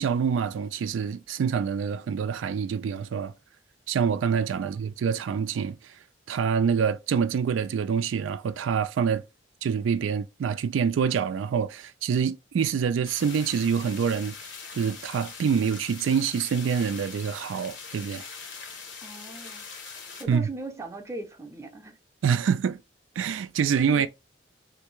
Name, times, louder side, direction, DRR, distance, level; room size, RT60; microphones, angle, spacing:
voice 1, 0.0-3.3 3.9-6.0 6.3-9.2 9.6-14.4 14.7-18.3 20.3-20.5 22.2-22.8 23.2-24.1, right 7 dB, 85° right, 0.3 m, -26 dB
sound 1, 13.0-20.2, left 5 dB, 75° left, 0.8 m, -42 dB
voice 2, 19.0-19.7 20.2-22.0 23.9-24.1, right 2 dB, 15° right, 0.6 m, -39 dB
3.3 x 2.6 x 3.0 m
head